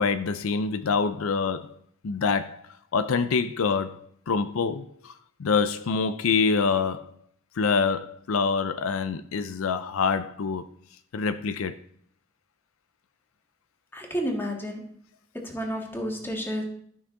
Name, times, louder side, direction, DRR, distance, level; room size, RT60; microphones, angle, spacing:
voice 1, 0.0-1.8 2.0-2.6 2.9-5.1 5.4-7.1 7.6-10.7 11.1-11.8, left 5 dB, 75° left, 0.5 m, -26 dB
voice 2, 13.9-14.9 15.3-16.6, equal, 10° left, 1.7 m, -31 dB
12.5 x 5.8 x 3.8 m
head